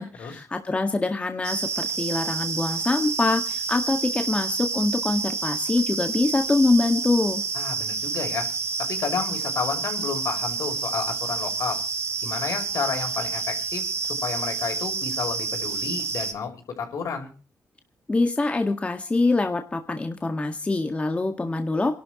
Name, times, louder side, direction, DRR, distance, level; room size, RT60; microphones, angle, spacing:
voice 1, 0.0-7.4 18.1-22.0, left 3 dB, 20° left, 5 dB, 1.8 m, -24 dB
sound 1, 1.4-16.3, right 5 dB, 50° right, 2.1 m, -29 dB
voice 2, 7.5-8.5 8.9-11.8 12.2-17.3, left 6 dB, 70° left, 4 dB, 5.7 m, -31 dB
28.0 x 12.5 x 3.1 m, 0.37 s
cardioid pair, 110°, 6 cm